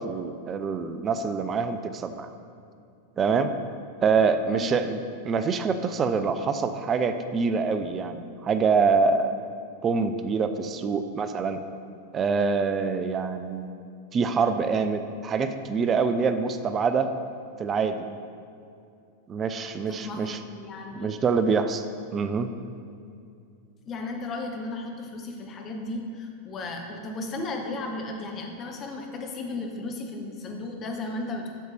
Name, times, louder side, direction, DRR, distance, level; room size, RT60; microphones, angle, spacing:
voice 1, 0.0-2.3 3.2-3.5 4.0-9.3 9.8-11.6 12.1-13.7 14.1-17.1 17.6-18.2 19.3-20.4 20.9-21.8 22.1-22.5, right 5 dB, 25° right, 9 dB, 0.4 m, -25 dB
voice 2, 4.5-4.8 19.9-21.1 23.9-31.5, left 2 dB, 30° left, 2 dB, 0.9 m, -35 dB
8.5 x 6.4 x 3.3 m, 2.5 s
figure-of-eight pair, 90°, 0 cm